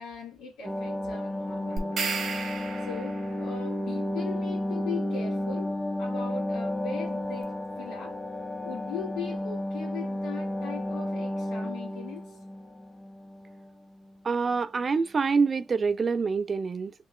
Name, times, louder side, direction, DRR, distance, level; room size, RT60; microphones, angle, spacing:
voice 1, 0.0-2.0 2.8-5.7 6.0-8.2 8.6-12.4, left 6 dB, 85° left, 1.5 m, -40 dB
sound 1, 0.6-13.7 14.0-14.1, left 1 dB, 10° left, 0.6 m, -32 dB
sound 2, 1.8-3.3, right 4 dB, 60° right, 0.9 m, -33 dB
voice 2, 14.2-16.9, right 5 dB, 35° right, 0.3 m, -26 dB
3.0 x 2.8 x 2.4 m
cardioid pair, 90°, 0 cm